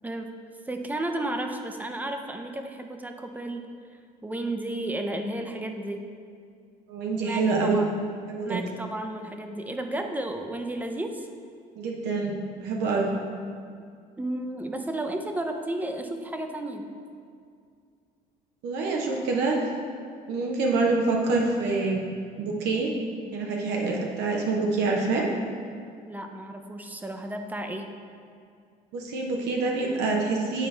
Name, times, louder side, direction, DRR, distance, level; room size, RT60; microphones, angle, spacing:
voice 1, 0.7-3.6 4.2-6.1 7.2-7.9 8.4-11.3 14.2-16.9 26.1-27.9, right 1 dB, 10° right, 5 dB, 0.5 m, -33 dB
voice 2, 6.9-7.9 8.3-8.6 11.8-13.1 18.6-19.7 20.3-22.0 22.4-22.9 23.3-25.3 28.9-30.7, right 3 dB, 85° right, 0 dB, 0.7 m, -26 dB
9.0 x 4.2 x 3.2 m, 2.3 s
cardioid pair, 110°, 17 cm